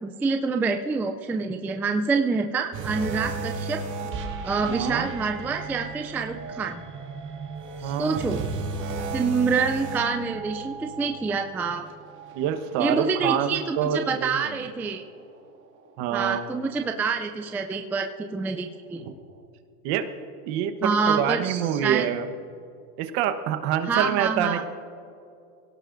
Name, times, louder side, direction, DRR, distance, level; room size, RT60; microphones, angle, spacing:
voice 1, 0.0-3.8 4.4-6.8 7.8-8.4 9.1-11.9 12.8-15.0 16.1-19.0 20.8-22.1 23.9-24.6, right 4 dB, 5° right, 5 dB, 0.3 m, -27 dB
sound 1, 2.7-14.2 14.5-14.8 15.4-15.5, right 4 dB, 40° right, 2.3 m, -35 dB
voice 2, 4.6-5.1 7.8-8.3 12.3-14.5 16.0-16.4 19.0-19.1 19.8-20.1 20.5-22.3 23.0-24.7, right 9 dB, 55° right, 8 dB, 1.3 m, -26 dB
23.5 x 17.5 x 2.6 m, 2.5 s
supercardioid pair, 115°, 45 cm